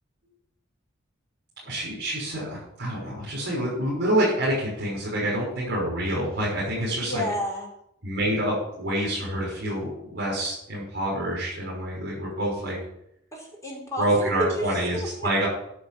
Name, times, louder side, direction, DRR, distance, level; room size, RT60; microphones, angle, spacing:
voice 1, 1.6-7.3 8.0-12.8 14.0-15.5, right 1 dB, 60° right, -6 dB, 6.1 m, -27 dB
voice 2, 7.0-7.7 13.3-15.5, equal, 15° left, -2 dB, 4.5 m, -31 dB
11.5 x 7.0 x 8.7 m, 0.75 s
head